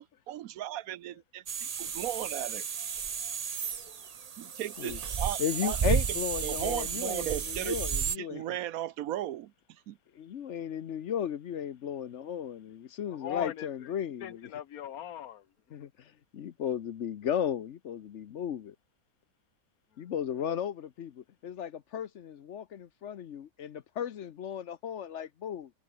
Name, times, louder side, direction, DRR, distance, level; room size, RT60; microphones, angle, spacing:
voice 1, 0.0-2.6 4.4-6.0 6.4-7.8 8.2-10.0, right 12 dB, 75° right, 1.1 m, -36 dB
sound 1, 1.5-8.2, right 7 dB, 50° right, 0.4 m, -33 dB
voice 2, 5.4-8.4 10.1-14.5 15.7-18.7 20.0-25.7, left 9 dB, 60° left, 1.0 m, -35 dB
voice 3, 13.1-13.9 14.2-15.9 19.9-20.1, left 10 dB, 80° left, 1.4 m, -41 dB
omnidirectional pair, 1.5 m